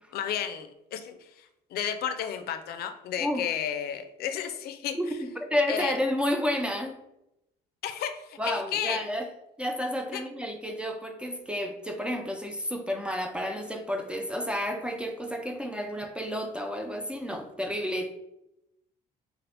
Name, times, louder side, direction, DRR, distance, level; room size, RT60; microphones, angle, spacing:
voice 1, 0.1-5.2 5.7-5.9 7.8-9.0 10.1-10.2, left 9 dB, 65° left, 8 dB, 0.4 m, -33 dB
voice 2, 3.2-3.5 4.9-7.0 8.4-9.3 9.6-18.1, equal, 5° right, 4 dB, 0.3 m, -31 dB
2.6 x 2.5 x 3.3 m, 0.85 s
cardioid pair, 110°, 17 cm